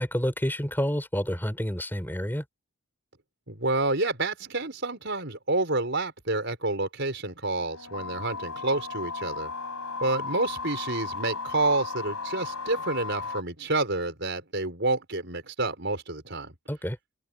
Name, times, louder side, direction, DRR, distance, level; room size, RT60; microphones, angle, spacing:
voice 1, 0.0-2.4 16.7-17.0, equal, 10° left, 6.1 m, -29 dB
voice 2, 3.5-9.5 10.0-16.6, right 2 dB, 50° right, 5.9 m, -29 dB
sound 1, 7.6-13.4, left 4 dB, 80° left, 6.7 m, -35 dB
open air
head